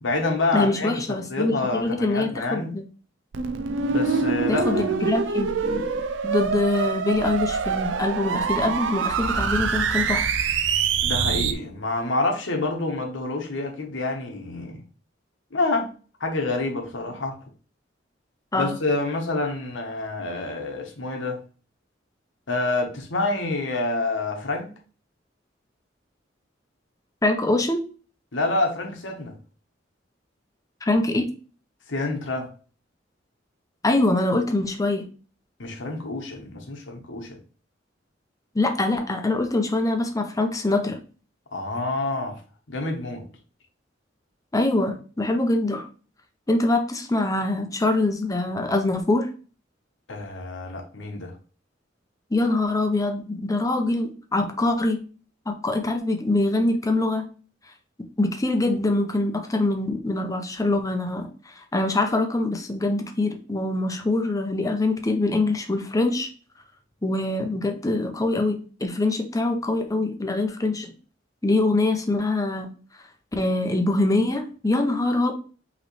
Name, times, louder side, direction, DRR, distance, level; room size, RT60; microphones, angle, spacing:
voice 1, 0.0-2.8 3.9-5.1 11.0-14.8 15.5-15.9 16.2-17.4 18.5-21.4 22.5-24.7 28.3-29.3 31.9-32.5 35.6-37.4 41.5-42.4 42.7-43.3 50.1-51.3, left 2 dB, 85° left, 1.1 m, -27 dB
voice 2, 0.5-1.5 1.8-2.8 4.5-5.9 6.2-10.3 18.5-18.8 27.2-27.8 30.8-31.3 33.8-35.1 38.5-41.0 44.5-45.9 46.5-49.3 52.3-55.0 55.5-57.3 58.2-61.3 61.7-66.3 67.0-70.9 71.4-72.7 73.3-75.4, left 2 dB, 20° left, 0.7 m, -24 dB
sound 1, 3.3-11.5, right 5 dB, 75° right, 0.5 m, -25 dB
5.2 x 3.1 x 3.2 m
head